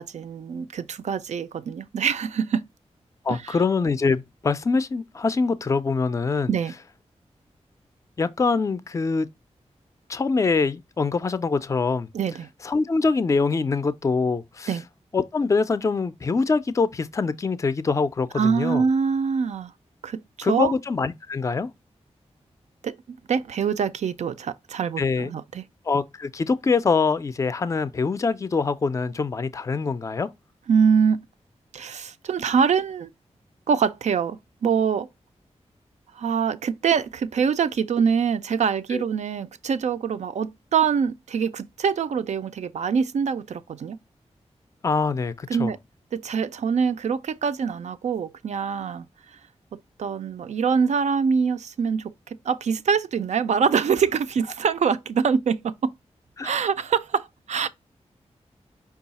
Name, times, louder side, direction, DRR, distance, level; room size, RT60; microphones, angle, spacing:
voice 1, 0.0-2.7 3.3-3.6 6.5-6.7 12.1-12.5 14.7-14.8 18.4-19.7 20.0-20.7 22.8-22.9 23.3-25.6 30.7-31.2 31.7-33.1 33.7-35.1 36.1-44.0 45.5-45.8 46.1-49.1 50.0-55.9 56.4-57.7, right 6 dB, 80° right, 0.4 m, -24 dB
voice 2, 3.2-6.5 8.2-9.3 10.1-12.1 12.6-14.7 15.1-18.8 20.4-21.7 25.0-25.3 25.9-30.3 38.9-39.1 44.8-45.7 56.4-56.5, left 4 dB, 25° left, 0.3 m, -24 dB
5.4 x 2.4 x 4.0 m
wide cardioid pair, 175°, 12 cm